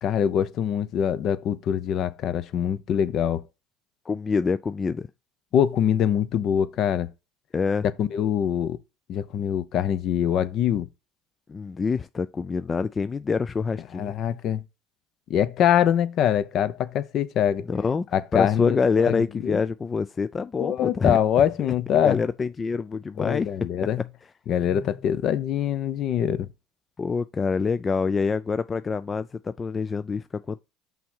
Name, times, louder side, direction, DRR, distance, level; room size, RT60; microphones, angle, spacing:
voice 1, 0.0-3.4 5.5-7.1 8.0-8.8 9.1-10.9 13.9-14.6 15.3-17.7 18.1-19.6 20.6-22.2 23.2-24.0 24.5-26.5, left 9 dB, 50° left, 0.7 m, -24 dB
voice 2, 4.1-5.1 7.5-7.8 11.5-14.1 17.7-18.1 18.3-21.2 22.0-23.5 24.7-24.9 27.0-30.6, left 5 dB, 25° left, 0.3 m, -26 dB
5.8 x 3.6 x 5.4 m
supercardioid pair, 105°, 0 cm